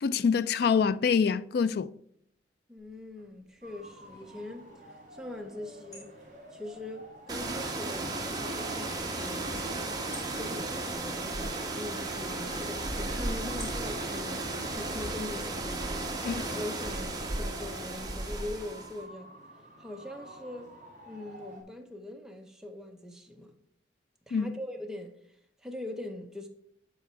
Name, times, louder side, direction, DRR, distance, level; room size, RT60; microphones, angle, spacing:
voice 1, 0.0-1.9 16.2-16.5 24.3-24.5, left 6 dB, 60° left, 0.3 m, -26 dB
voice 2, 2.7-4.7 5.1-6.1 6.5-9.5 10.4-19.3 19.8-20.7 21.0-23.5 24.3-25.1 25.6-26.5, left 1 dB, 5° right, 0.7 m, -42 dB
sound 1, 2.8-17.4, left 1 dB, 25° left, 2.9 m, -57 dB
sound 2, 3.6-21.6, equal, 45° right, 2.2 m, -51 dB
sound 3, 7.3-19.0, right 2 dB, 20° right, 1.0 m, -34 dB
9.4 x 3.9 x 4.4 m
head